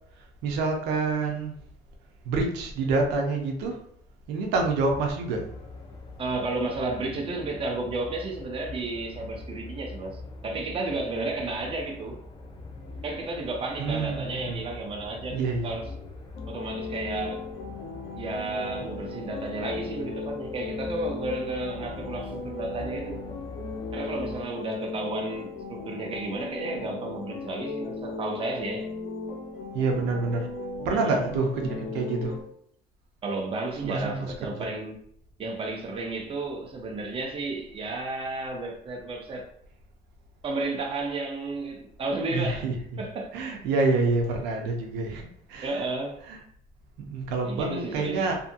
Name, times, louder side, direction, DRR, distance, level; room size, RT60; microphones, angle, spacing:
voice 1, 0.4-1.5 2.2-3.8 4.3-5.5 13.8-14.6 15.3-15.8 29.7-30.5 30.8-32.3 33.8-34.3 42.3-42.7 43.3-45.8 46.3-46.4 47.0-48.4, right 3 dB, 90° right, 0.6 m, -27 dB
sound 1, 4.6-24.4, left 3 dB, 30° left, 0.5 m, -43 dB
voice 2, 6.2-12.2 13.0-15.9 16.5-17.4 18.2-23.2 23.9-28.9 30.9-31.3 33.2-35.0 35.4-39.5 40.4-42.7 43.0-43.3 45.6-46.2 47.4-48.3, right 2 dB, 35° right, 0.7 m, -32 dB
sound 2, 16.3-32.4, left 3 dB, 70° left, 0.9 m, -37 dB
2.7 x 2.6 x 2.5 m
cardioid pair, 110°, 17 cm